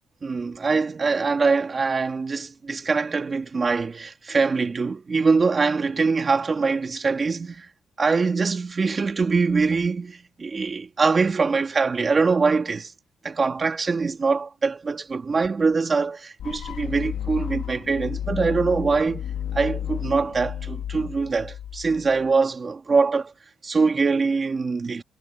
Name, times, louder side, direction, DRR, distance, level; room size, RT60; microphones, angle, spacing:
voice 1, 0.2-7.7 8.0-12.9 13.2-19.2 19.5-23.3 23.6-25.0, right 4 dB, 25° right, 2.7 m, -23 dB
sound 1, 16.4-22.3, left 10 dB, 70° left, 1.9 m, -32 dB
cardioid pair, 170°, 0 cm